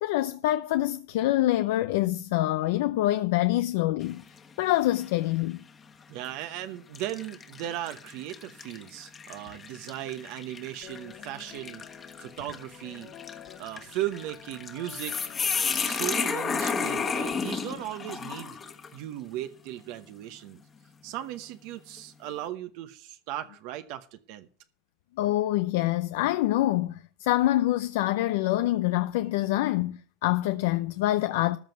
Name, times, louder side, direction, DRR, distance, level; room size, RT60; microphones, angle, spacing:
voice 1, 0.0-4.2 4.6-5.6 25.2-31.6, left 15 dB, 80° left, 0.5 m, -25 dB
sound 1, 4.0-4.5 5.0-5.1 6.1-6.3 6.9-19.0, left 5 dB, 25° left, 1.4 m, -33 dB
voice 2, 6.1-11.8 12.2-13.1 13.6-15.2 15.7-18.6 18.9-20.6 21.0-24.5, right 13 dB, 65° right, 1.0 m, -37 dB
sound 2, 10.8-17.9, left 11 dB, 60° left, 2.6 m, -49 dB
14.0 x 5.4 x 9.1 m
supercardioid pair, 125°, 0 cm